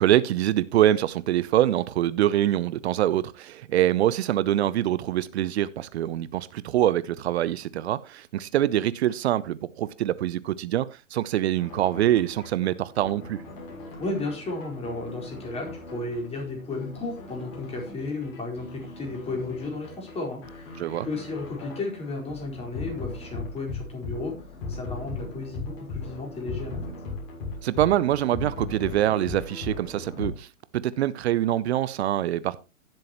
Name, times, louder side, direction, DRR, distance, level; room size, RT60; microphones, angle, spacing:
voice 1, 0.0-13.4 20.8-21.1 27.6-30.5 30.8-32.6, right 12 dB, 50° right, 0.7 m, -24 dB
sound 1, 11.6-30.3, left 3 dB, 35° left, 7.1 m, -38 dB
voice 2, 14.0-24.4 24.7-26.8, left 3 dB, 15° left, 4.5 m, -34 dB
18.0 x 7.7 x 3.0 m
hypercardioid pair, 125°, 41 cm